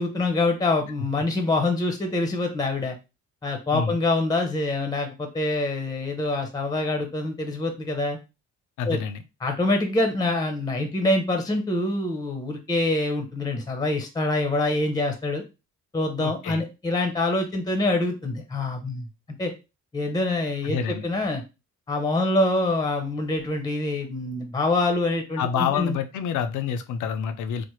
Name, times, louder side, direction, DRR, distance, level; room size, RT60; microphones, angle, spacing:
voice 1, 0.0-3.0 3.4-8.2 8.9-9.0 9.4-15.4 15.9-19.1 19.4-19.5 19.9-21.4 21.9-26.0, left 2 dB, 15° left, 5 dB, 0.6 m, -25 dB
voice 2, 8.8-9.2 16.2-16.6 20.6-21.0 25.4-27.6, left 7 dB, 80° left, 9 dB, 0.5 m, -27 dB
3.3 x 2.1 x 3.0 m, 0.28 s
cardioid pair, 90°, 30 cm